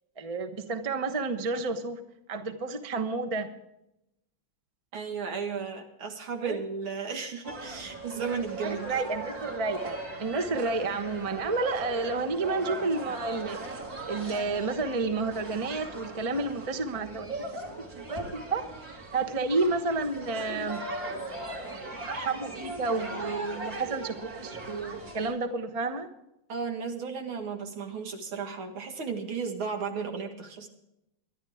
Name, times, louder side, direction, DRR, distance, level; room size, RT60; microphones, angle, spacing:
voice 1, 0.2-2.0 2.3-3.5 6.4-6.6 8.2-8.3 8.6-17.3 17.9-18.6 19.1-20.8 22.0-26.1, right 3 dB, 25° right, 8 dB, 0.9 m, -31 dB
voice 2, 4.9-8.9 26.5-30.7, right 5 dB, 80° right, 4 dB, 2.6 m, -34 dB
sound 1, 7.4-25.3, right 2 dB, 45° right, 3.0 m, -39 dB
23.5 x 11.0 x 3.6 m, 0.85 s
omnidirectional pair, 2.2 m